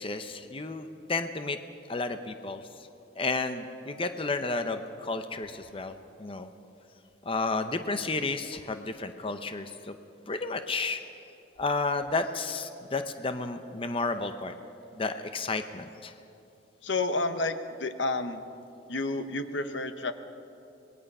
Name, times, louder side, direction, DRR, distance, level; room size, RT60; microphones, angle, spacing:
voice 1, 0.0-1.6 1.9-2.7 3.2-6.5 7.2-10.0 10.3-11.0 11.6-14.5 14.9-16.1, left 3 dB, 30° left, 8 dB, 0.8 m, -32 dB
voice 2, 16.8-18.4 18.9-20.1, left 2 dB, 80° left, 9 dB, 1.1 m, -30 dB
25.5 x 20.5 x 5.5 m, 2.7 s
head